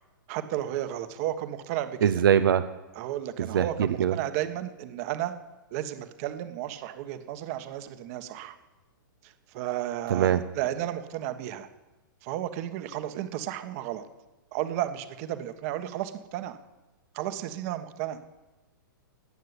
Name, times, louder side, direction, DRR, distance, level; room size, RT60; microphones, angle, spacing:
voice 1, 0.3-2.1 2.9-5.3 5.7-8.6 9.2-11.7 12.2-14.0 14.5-16.6 17.1-18.2, right 12 dB, 45° right, 10 dB, 1.4 m, -33 dB
voice 2, 2.0-2.7 3.4-4.2 10.1-10.4, right 9 dB, 75° right, 10 dB, 0.8 m, -22 dB
18.0 x 6.7 x 9.8 m, 1.1 s
hypercardioid pair, 140°, 12 cm